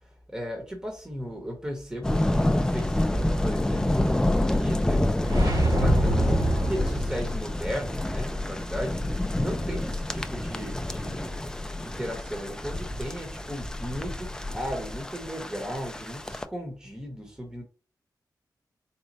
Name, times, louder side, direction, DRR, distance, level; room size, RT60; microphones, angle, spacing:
voice 1, 0.3-6.3 6.7-11.4 11.8-17.6, equal, 10° right, 1 dB, 1.0 m, -36 dB
sound 1, 2.0-16.4, left 1 dB, 10° left, 0.4 m, -28 dB
sound 2, 5.2-7.4, right 1 dB, 80° right, 1.9 m, -25 dB
4.2 x 2.2 x 3.9 m, 0.34 s
wide cardioid pair, 120°, 7 cm